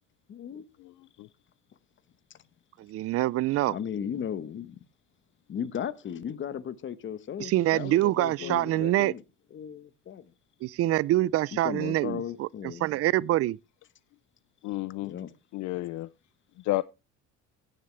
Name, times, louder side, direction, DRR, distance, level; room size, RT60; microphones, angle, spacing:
voice 1, 0.3-0.6 3.6-4.8 5.5-9.2 9.5-10.3 11.5-12.9 15.0-15.3, left 8 dB, 35° left, 1.0 m, -36 dB
voice 2, 2.8-3.8 7.4-9.1 10.6-12.5 12.8-13.6, right 15 dB, 45° right, 0.4 m, -25 dB
voice 3, 14.6-15.1 15.5-16.1 16.6-16.8, left 18 dB, 60° left, 0.5 m, -31 dB
16.5 x 7.3 x 3.2 m
cardioid pair, 120°, 32 cm